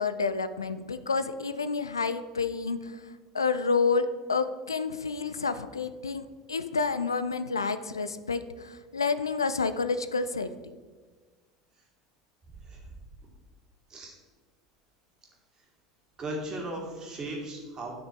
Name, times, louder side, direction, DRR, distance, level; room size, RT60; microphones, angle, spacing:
voice 1, 0.0-10.5, left 4 dB, 85° left, 12 dB, 0.4 m, -29 dB
voice 2, 16.2-17.9, right 1 dB, 30° right, -1 dB, 2.3 m, -37 dB
10.5 x 5.9 x 3.5 m, 1.4 s
figure-of-eight pair, 75°, 2 cm